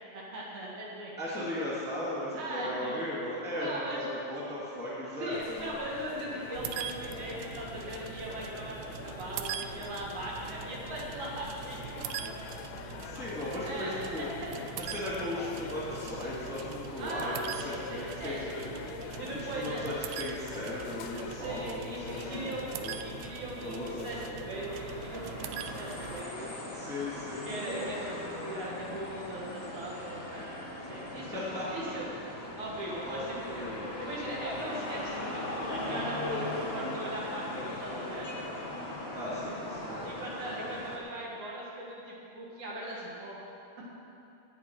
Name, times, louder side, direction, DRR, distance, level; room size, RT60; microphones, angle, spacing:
voice 1, 0.1-1.4 2.3-2.9 3.6-4.1 5.1-12.3 13.6-14.5 17.0-19.8 21.3-26.5 27.4-31.4 31.7-32.1 32.6-33.6 34.0-38.3 40.0-43.4, right 1 dB, 65° right, -4 dB, 3.2 m, -39 dB
voice 2, 1.2-5.7 13.0-14.3 14.8-18.5 19.3-23.0 23.6-24.4 26.7-28.5 31.1-32.0 33.0-34.0 39.1-40.1, left 1 dB, 5° left, -8 dB, 2.2 m, -37 dB
sound 1, 5.3-24.3, left 9 dB, 85° left, 2.1 m, -45 dB
sound 2, 6.5-26.2, right 10 dB, 90° right, 2.2 m, -43 dB
sound 3, 24.5-41.0, left 1 dB, 30° left, 1.3 m, -39 dB
17.0 x 8.6 x 4.9 m, 2.8 s
omnidirectional pair, 3.8 m